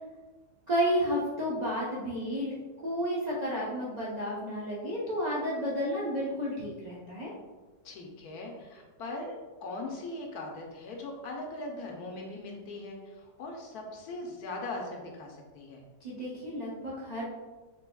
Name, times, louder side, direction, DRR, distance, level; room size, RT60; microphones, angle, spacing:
voice 1, 0.7-2.5 2.8-7.3 16.0-17.2, equal, 60° right, -8 dB, 0.4 m, -31 dB
voice 2, 7.8-15.8, left 2 dB, 70° left, 0 dB, 1.0 m, -40 dB
4.6 x 3.4 x 2.2 m, 1.3 s
omnidirectional pair, 1.9 m